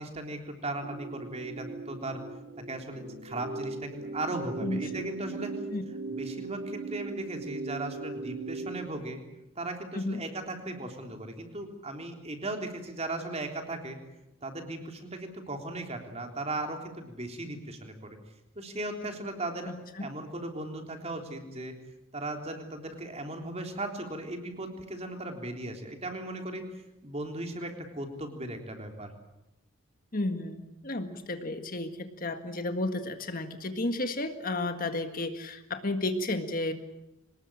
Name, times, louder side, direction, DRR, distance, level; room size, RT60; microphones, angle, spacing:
voice 1, 0.0-2.2 2.7-5.5 6.1-9.2 9.6-14.0 14.4-18.2 18.6-19.7 20.0-21.7 22.1-26.6 27.0-29.1, right 2 dB, 30° right, 4 dB, 3.5 m, -37 dB
sound 1, 0.8-8.9, right 3 dB, 70° right, 3.4 m, -39 dB
voice 2, 4.6-5.1 5.7-5.8 9.9-10.2 19.7-20.0 30.1-36.7, left 2 dB, 45° left, 8 dB, 1.8 m, -33 dB
24.5 x 20.0 x 8.7 m, 0.93 s
head